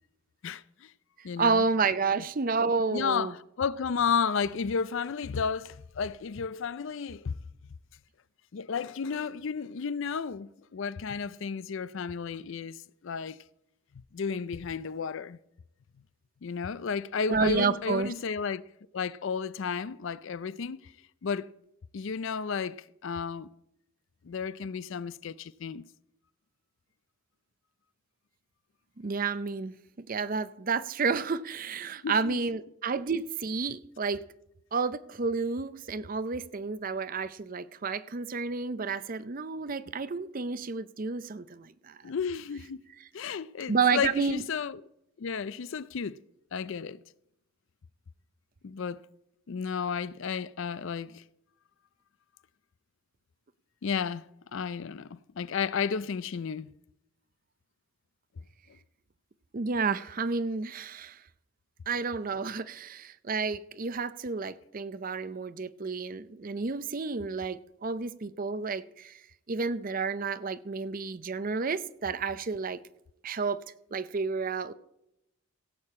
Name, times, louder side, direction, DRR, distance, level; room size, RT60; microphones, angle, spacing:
voice 1, 0.4-0.9 1.2-1.7 2.2-2.3 2.9-7.4 8.5-12.8 13.0-13.4 14.1-15.4 16.4-18.7 18.9-20.9 21.2-21.5 21.9-23.5 24.2-25.9 32.0-32.4 42.0-42.8 43.1-44.8 45.2-46.2 46.5-47.0 48.6-49.0 49.5-51.2 53.8-54.2 54.5-56.7, left 6 dB, 60° left, 0.4 m, -32 dB
voice 2, 1.2-3.3 17.3-18.1 29.0-34.2 34.7-42.0 43.7-44.4 59.5-61.2 61.9-69.2 69.5-72.8 73.2-73.6 73.9-74.7, right 4 dB, 40° right, 0.5 m, -30 dB
17.0 x 8.6 x 4.3 m
head